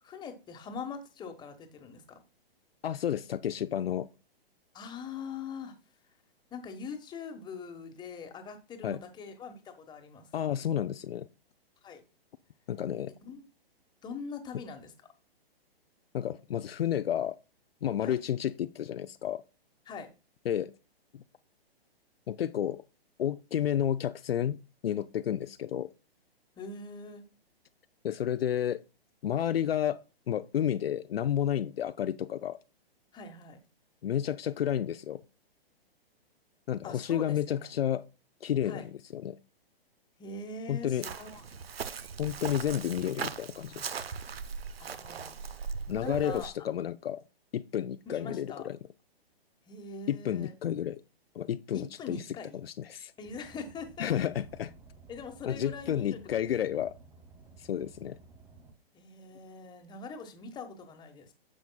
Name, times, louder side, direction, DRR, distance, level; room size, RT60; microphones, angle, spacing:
voice 1, 0.0-2.2 4.7-5.8 6.5-10.3 11.8-12.0 13.2-13.4 14.0-14.9 18.0-18.2 19.9-20.1 26.6-27.2 33.1-33.6 36.8-37.8 38.6-38.9 40.2-41.5 44.8-45.4 45.6-46.5 48.1-48.7 49.7-50.5 51.7-52.6 53.2-54.1 55.1-56.8 58.9-61.3, left 4 dB, 15° left, 1.2 m, -43 dB
voice 2, 2.8-4.1 8.8-9.0 10.3-11.3 12.7-13.1 16.1-17.4 17.8-19.4 20.5-20.7 21.1-21.2 22.3-22.8 23.2-25.9 28.0-28.8 29.2-32.6 34.0-35.2 36.7-38.0 38.4-39.4 40.7-41.1 42.2-44.0 45.9-47.2 47.5-48.8 50.1-51.0 51.4-52.2 52.6-53.1 54.0-54.7 55.5-56.9 57.6-58.2, left 10 dB, 70° left, 0.5 m, -31 dB
Chirp tweet, 41.0-46.5, right 6 dB, 75° right, 0.8 m, -39 dB
Car, 53.2-58.7, right 4 dB, 5° right, 0.4 m, -54 dB
9.7 x 7.0 x 2.3 m
figure-of-eight pair, 125°, 31 cm